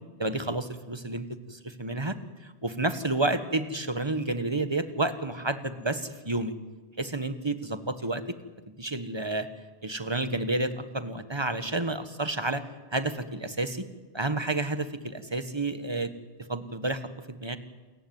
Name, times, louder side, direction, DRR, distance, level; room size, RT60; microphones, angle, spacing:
voice 1, 0.2-6.5 7.0-8.2 8.7-9.5 9.8-12.6 12.9-13.8 14.1-16.1 16.5-17.6, right 2 dB, 25° right, 10 dB, 1.3 m, -30 dB
28.0 x 15.0 x 9.4 m, 1.2 s
omnidirectional pair, 1.2 m